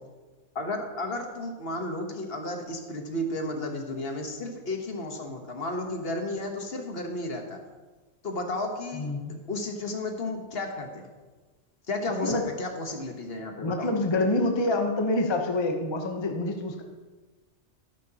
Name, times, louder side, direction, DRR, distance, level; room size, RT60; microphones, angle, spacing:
voice 1, 0.5-7.6 8.2-9.1 9.5-11.1 11.9-13.9, left 2 dB, 55° left, 3 dB, 1.4 m, -33 dB
voice 2, 8.9-9.4 12.1-12.5 13.6-16.8, left 2 dB, 25° left, 3 dB, 0.9 m, -27 dB
12.5 x 10.5 x 2.9 m, 1.3 s
omnidirectional pair, 1.2 m